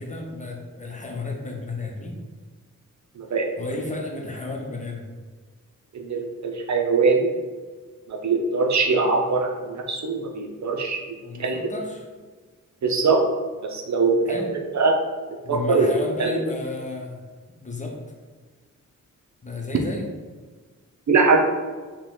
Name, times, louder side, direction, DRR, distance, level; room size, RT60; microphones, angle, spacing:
voice 1, 0.0-2.2 3.6-5.0 11.2-12.1 14.3-14.5 15.4-17.2 17.5-18.0 19.4-20.1, left 3 dB, 25° left, -1 dB, 0.8 m, -32 dB
voice 2, 3.2-3.5 5.9-7.3 8.1-11.0 11.4-11.6 12.8-13.2 13.6-15.0 15.5-15.9 16.2-16.3 21.1-21.4, right 4 dB, 60° right, 2 dB, 0.6 m, -22 dB
4.9 x 2.3 x 3.7 m, 1.4 s
cardioid pair, 75°, 32 cm